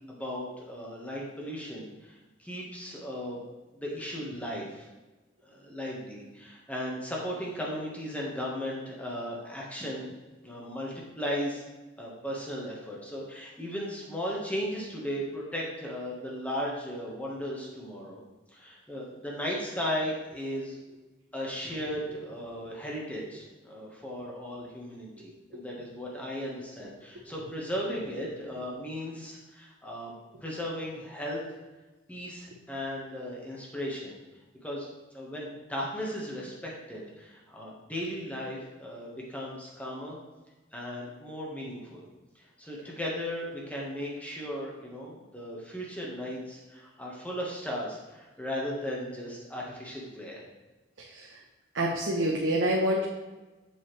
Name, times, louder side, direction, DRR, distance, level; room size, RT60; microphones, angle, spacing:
voice 1, 0.1-3.4 3.7-4.9 5.4-10.1 10.4-11.6 12.0-18.2 18.5-20.8 21.3-30.1 30.4-31.4 32.1-34.2 34.6-34.9 35.1-40.2 40.7-42.0 42.3-50.4, equal, 10° left, -4 dB, 1.5 m, -36 dB
voice 2, 25.2-25.6 27.1-27.2 30.3-30.4 51.0-51.4 51.7-53.0, right 1 dB, 90° right, -2 dB, 0.9 m, -28 dB
7.5 x 5.6 x 3.3 m, 1.1 s
head